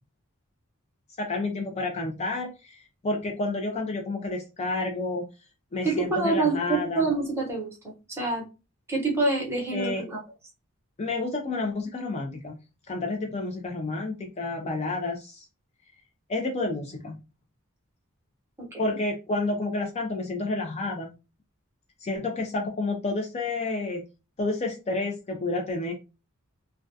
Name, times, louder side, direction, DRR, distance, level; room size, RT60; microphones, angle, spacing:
voice 1, 1.2-5.3 5.7-7.1 9.7-10.0 11.0-12.6 12.9-15.5 16.3-17.2 18.8-21.1 22.0-24.0 24.4-25.9, left 2 dB, 30° left, 2 dB, 0.4 m, -30 dB
voice 2, 5.8-8.4 8.9-10.2 18.7-19.0, right 3 dB, 10° right, -3 dB, 0.8 m, -27 dB
2.2 x 2.2 x 2.6 m, 0.29 s
head